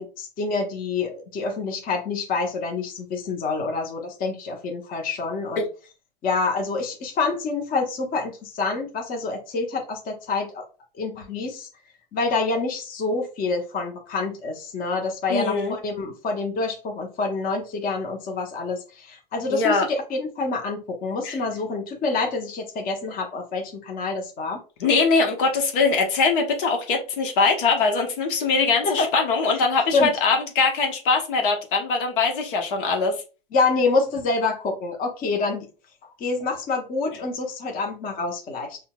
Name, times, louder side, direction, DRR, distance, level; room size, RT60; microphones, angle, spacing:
voice 1, 0.0-5.6 6.2-10.6 10.9-11.7 12.1-24.6 28.8-29.1 29.9-30.1 33.5-35.6 36.2-38.8, left 3 dB, 30° left, 1.0 m, -27 dB
voice 2, 15.3-15.8 19.5-19.9 21.2-21.4 24.8-33.1, left 4 dB, 60° left, 1.1 m, -22 dB
5.5 x 2.3 x 2.3 m
hypercardioid pair, 105°, 29 cm